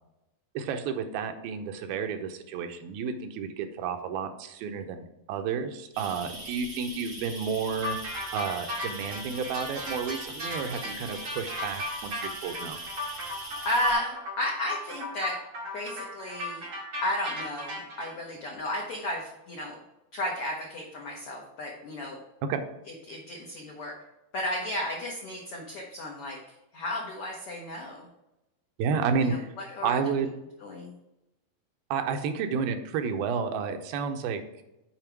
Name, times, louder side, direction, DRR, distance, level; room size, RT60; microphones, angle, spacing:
voice 1, 0.5-8.0 8.3-12.8 22.5-22.6 28.8-29.5 29.8-30.3 31.9-34.4, right 6 dB, 90° right, 6 dB, 2.6 m, -31 dB
sound 1, 5.9-13.9, right 1 dB, 25° right, 0.9 m, -41 dB
sound 2, 7.8-18.1, left 2 dB, 40° right, 2.5 m, -36 dB
voice 2, 13.6-15.4 15.7-16.7 17.0-19.8 20.1-22.2 22.9-24.0 24.3-26.4 26.7-28.1 29.2-30.0 30.6-30.9, left 1 dB, 80° left, -1 dB, 1.2 m, -33 dB
7.3 x 5.0 x 4.6 m, 0.92 s
omnidirectional pair, 4.1 m